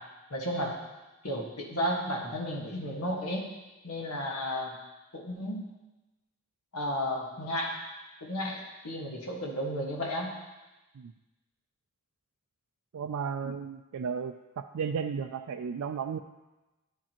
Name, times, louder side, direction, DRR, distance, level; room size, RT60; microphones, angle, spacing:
voice 1, 0.3-0.7 1.2-3.5 3.8-4.8 5.1-5.6 6.7-7.8 8.2-10.3, equal, 90° left, -1 dB, 1.6 m, -33 dB
voice 2, 12.9-14.3 14.7-16.2, right 6 dB, 70° right, 6 dB, 0.3 m, -33 dB
11.0 x 7.3 x 3.0 m, 1.1 s
head